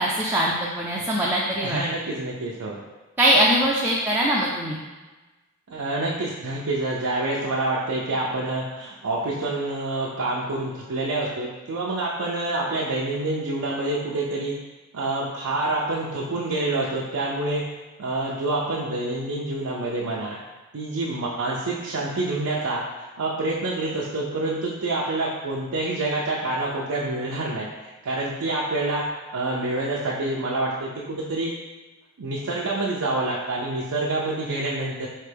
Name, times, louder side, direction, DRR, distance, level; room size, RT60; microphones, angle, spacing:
voice 1, 0.0-1.8 3.2-4.8, equal, 10° right, -5 dB, 0.4 m, -22 dB
voice 2, 1.6-2.8 5.7-14.5 14.9-17.6 18.0-20.4 20.7-22.8 23.2-29.0 29.3-31.5 32.2-35.1, right 2 dB, 85° right, -5 dB, 0.5 m, -27 dB
4.4 x 3.2 x 3.3 m, 1.2 s
head